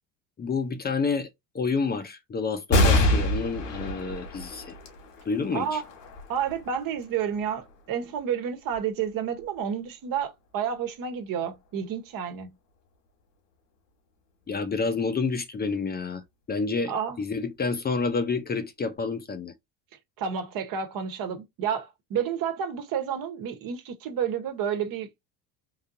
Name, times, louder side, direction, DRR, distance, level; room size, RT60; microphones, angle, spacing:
voice 1, 0.4-1.3 1.5-4.8 5.2-5.8 14.5-16.2 16.5-19.5, left 4 dB, 25° left, 0.6 m, -29 dB
sound 1, 2.7-9.6 10.2-10.3 11.4-12.0, left 1 dB, 85° left, 1.8 m, -28 dB
voice 2, 5.5-5.8 6.3-12.5 16.9-17.2 20.2-25.1, right 8 dB, 55° right, 1.2 m, -30 dB
3.8 x 2.7 x 2.7 m
supercardioid pair, 95°, 39 cm